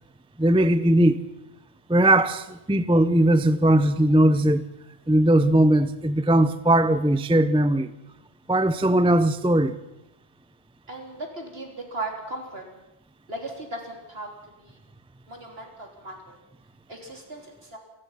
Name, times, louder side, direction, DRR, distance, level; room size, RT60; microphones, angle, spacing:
voice 1, 0.4-1.2 1.9-4.7 5.1-7.9 8.5-9.7, right 1 dB, 5° right, 0.4 m, -19 dB
voice 2, 10.9-12.6 13.3-14.3 14.6-14.8 15.3-16.4 16.9-17.8, right 2 dB, 50° right, 4.0 m, -37 dB
27.0 x 19.0 x 5.8 m
omnidirectional pair, 1.3 m